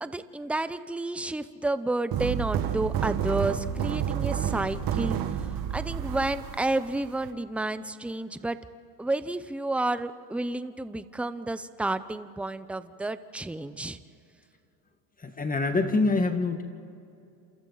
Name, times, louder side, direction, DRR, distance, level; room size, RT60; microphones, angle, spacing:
voice 1, 0.0-8.6 9.0-14.0, right 2 dB, 5° right, 12 dB, 0.7 m, -31 dB
sound 1, 2.1-7.3, right 9 dB, 50° right, 1.8 m, -30 dB
voice 2, 15.2-16.6, left 3 dB, 20° left, 6 dB, 1.7 m, -25 dB
29.5 x 27.5 x 4.1 m, 2.6 s
supercardioid pair, 110°, 45 cm